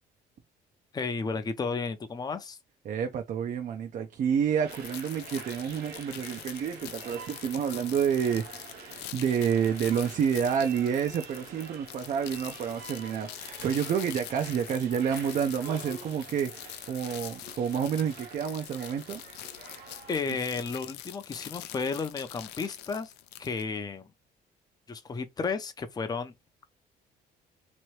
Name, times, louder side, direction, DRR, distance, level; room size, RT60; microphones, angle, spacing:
voice 1, 0.9-2.6 20.1-23.1 23.4-24.1 24.9-26.3, left 4 dB, 25° left, 0.6 m, -33 dB
voice 2, 2.8-19.2, right 7 dB, 50° right, 0.6 m, -29 dB
sound 1, 4.5-20.2, right 5 dB, 75° right, 1.3 m, -47 dB
sound 2, 4.7-23.6, left 13 dB, 85° left, 0.5 m, -44 dB
3.0 x 2.6 x 3.1 m
cardioid pair, 110°, 17 cm